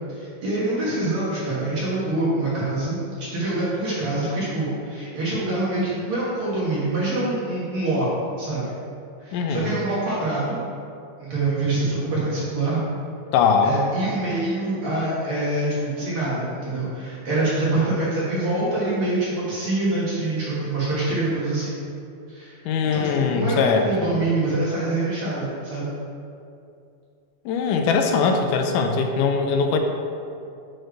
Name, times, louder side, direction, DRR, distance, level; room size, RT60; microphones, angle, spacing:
voice 1, 0.1-8.1 8.4-8.7 9.2-10.6 11.2-12.8 13.6-21.8 22.3-22.6 22.9-25.9, right 2 dB, 55° right, -8 dB, 1.8 m, -25 dB
voice 2, 9.3-9.7 13.3-13.8 22.7-24.2 27.5-29.8, left 5 dB, 90° left, 4 dB, 2.1 m, -21 dB
6.3 x 4.4 x 4.6 m, 2.5 s
omnidirectional pair, 3.5 m